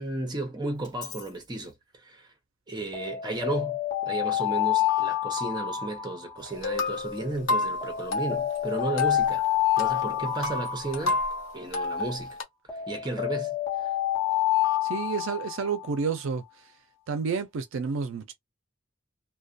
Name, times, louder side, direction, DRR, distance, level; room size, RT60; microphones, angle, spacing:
voice 1, 0.0-2.3 2.7-3.8 4.1-9.4 9.8-11.2 11.5-12.4 12.9-13.9, right 2 dB, 20° right, 0.7 m, -34 dB
Alarm, 0.8-1.2 2.9-6.7 7.8-11.6 12.7-15.9, left 13 dB, 20° left, 1.2 m, -28 dB
sound 1, 6.4-12.4, left 3 dB, 80° left, 1.0 m, -31 dB
voice 2, 14.8-16.4 17.1-18.3, right 5 dB, 70° right, 0.4 m, -30 dB
2.3 x 2.1 x 2.5 m
head